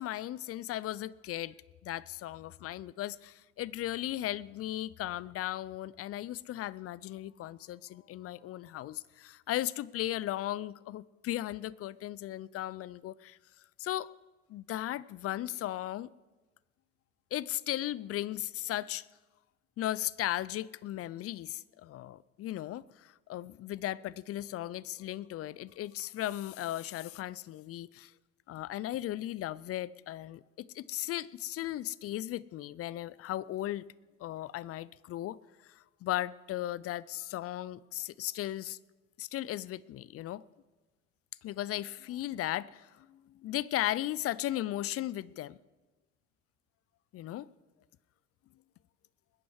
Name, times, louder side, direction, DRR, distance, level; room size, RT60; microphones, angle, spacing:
voice 1, 0.0-1.5 1.8-13.4 13.8-14.1 14.5-16.1 17.3-19.1 19.8-28.1 28.5-33.8 34.2-35.4 35.6-38.8 39.2-40.4 41.4-45.6 47.1-47.5, left 14 dB, 35° left, 0.5 m, -36 dB
21.0 x 10.0 x 4.8 m
hypercardioid pair, 70°, 42 cm